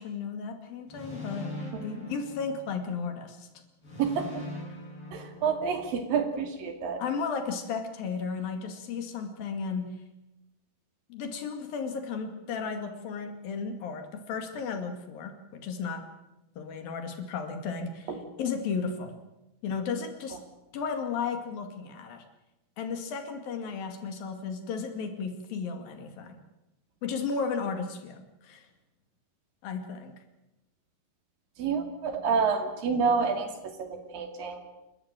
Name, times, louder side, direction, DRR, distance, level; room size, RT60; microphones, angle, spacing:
voice 1, 0.0-1.6 1.8-3.5 7.0-10.0 11.1-16.1 16.6-19.2 19.6-20.4 20.7-22.2 22.8-26.4 27.0-28.7 29.6-30.1, left 5 dB, 70° left, 6 dB, 4.0 m, -34 dB
sound 1, 0.9-3.1 3.8-6.0, left 1 dB, 35° left, 7.7 m, -42 dB
voice 2, 5.1-7.0 18.1-18.2 31.6-34.6, right 5 dB, 70° right, 6 dB, 4.1 m, -28 dB
28.5 x 13.0 x 8.9 m, 0.95 s
omnidirectional pair, 4.3 m